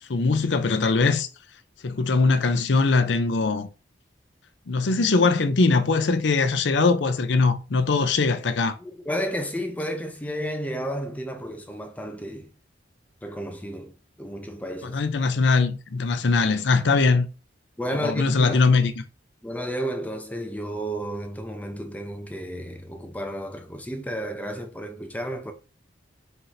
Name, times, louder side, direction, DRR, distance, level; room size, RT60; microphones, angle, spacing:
voice 1, 0.1-1.3 1.8-3.7 4.7-8.8 14.8-17.3 18.0-19.0, left 4 dB, 75° left, 0.6 m, -21 dB
voice 2, 8.8-12.5 13.2-13.9 14.2-15.0 17.8-18.6 19.4-25.5, equal, 10° left, 0.6 m, -32 dB
4.4 x 2.6 x 4.1 m
head